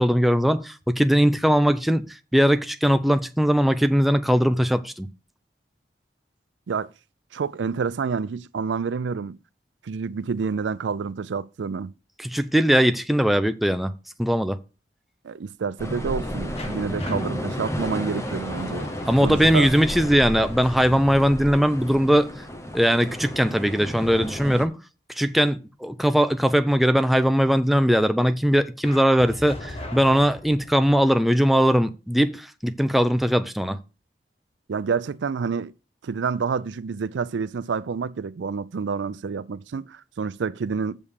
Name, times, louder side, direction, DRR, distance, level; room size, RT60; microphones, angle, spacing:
voice 1, 0.0-2.0 2.3-5.1 12.2-13.9 14.2-14.6 19.1-22.3 22.7-24.7 25.2-33.8, equal, ahead, 0.4 m, -20 dB
voice 2, 7.3-9.4 9.8-11.9 15.2-18.9 19.2-19.7 34.7-35.7 36.0-41.0, right 5 dB, 90° right, 0.4 m, -28 dB
sound 1, 15.8-24.7, equal, 15° left, 0.9 m, -32 dB
sound 2, 16.6-23.3 28.8-31.1, left 1 dB, 35° left, 1.4 m, -40 dB
7.0 x 5.4 x 6.4 m
head